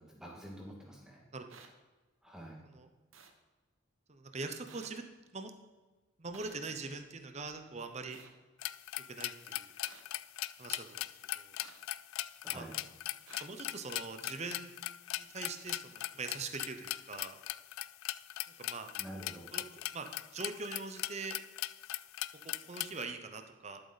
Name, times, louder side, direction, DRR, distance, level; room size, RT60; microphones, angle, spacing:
voice 1, 0.0-1.2 2.2-2.6 12.4-12.8 19.0-19.5, right 1 dB, 5° right, -2 dB, 1.9 m, -47 dB
sound 1, 1.5-1.7 3.1-3.3 4.7-4.9 6.3-6.6 8.1-8.3 9.8-10.0 11.6-11.8 13.3-13.4, right 6 dB, 80° right, 1.1 m, -54 dB
voice 2, 4.1-5.0 5.3-5.5 6.2-8.2 9.1-9.7 10.6-11.0 11.3-11.6 12.5-12.8 13.4-14.8 15.2-17.4 18.6-18.9 19.5-19.6 19.9-21.4 22.4-23.8, right 4 dB, 30° right, 7 dB, 0.7 m, -42 dB
sound 2, 8.6-23.0, left 15 dB, 80° left, 0.3 m, -40 dB
12.0 x 7.8 x 4.1 m, 1.3 s
head